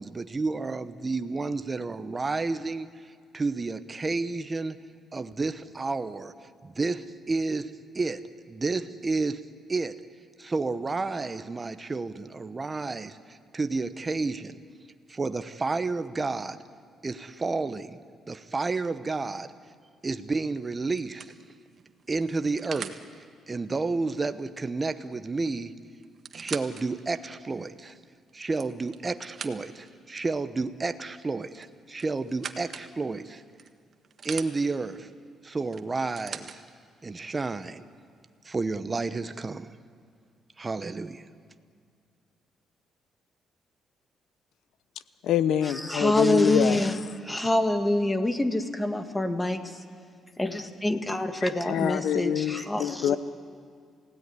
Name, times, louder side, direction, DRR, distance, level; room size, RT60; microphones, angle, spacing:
voice 1, 0.0-4.8 5.1-10.0 10.4-14.6 15.1-16.6 17.0-18.0 18.3-19.5 20.0-21.4 22.1-23.0 23.5-25.7 26.3-28.0 28.3-33.4 34.2-35.1 35.4-36.6 37.0-37.9 38.4-39.7 40.6-41.2, right 3 dB, 25° right, 0.9 m, -31 dB
sound 1, 20.3-20.4 21.0-23.0 25.1-25.2 25.4-25.5 26.0-26.8 27.4-27.5 28.3-29.9 31.6-32.9 33.6-34.5 35.7-36.6 37.5-37.6, right 6 dB, 50° right, 1.5 m, -41 dB
voice 2, 45.2-46.9 51.4-53.2, left 10 dB, 80° left, 0.9 m, -26 dB
voice 3, 45.9-46.9 47.2-49.8 50.4-53.2, left 1 dB, 15° left, 1.9 m, -26 dB
28.5 x 16.5 x 9.8 m
cardioid pair, 90°, 0 cm